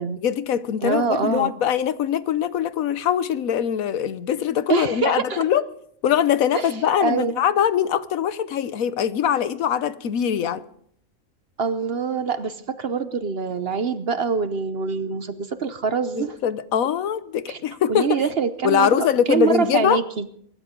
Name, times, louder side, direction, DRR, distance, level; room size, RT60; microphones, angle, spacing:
voice 1, 0.2-5.6 6.0-10.6 16.2-18.2 18.6-20.0, left 9 dB, 75° left, 1.2 m, -22 dB
voice 2, 0.8-1.5 4.7-5.4 6.6-6.7 7.0-7.4 11.6-16.3 17.5-17.6 17.9-20.3, right 5 dB, 50° right, 0.9 m, -24 dB
24.0 x 13.5 x 3.8 m
omnidirectional pair, 1.5 m